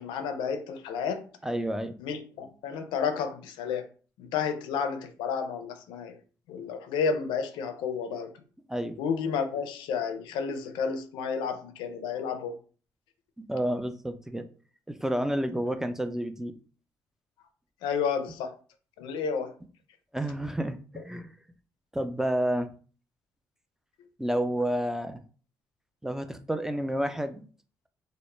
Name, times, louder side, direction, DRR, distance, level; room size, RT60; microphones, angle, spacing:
voice 1, 0.0-1.2 2.0-3.9 4.2-6.2 6.5-8.3 9.0-12.5 15.7-15.8 17.8-18.5 19.0-19.5 21.0-21.1, left 6 dB, 85° left, 0.4 m, -31 dB
voice 2, 1.4-1.9 8.7-9.0 13.4-14.5 14.9-16.5 20.1-21.3 21.9-22.7 24.2-25.2 26.0-27.5, right 1 dB, 5° right, 0.4 m, -30 dB
2.1 x 2.0 x 3.1 m
supercardioid pair, 60°, 8 cm